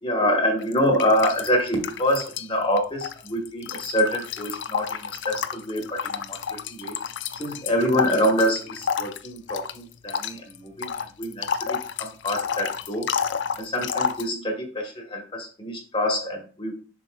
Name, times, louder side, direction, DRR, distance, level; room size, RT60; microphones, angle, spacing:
voice 1, 0.0-6.9 7.4-10.9 11.2-13.1 13.6-16.7, equal, 30° left, 2 dB, 1.2 m, -26 dB
sound 1, 0.6-2.5 2.8-14.3, left 7 dB, 75° left, 0.5 m, -31 dB
7.3 x 5.7 x 2.3 m, 0.40 s
head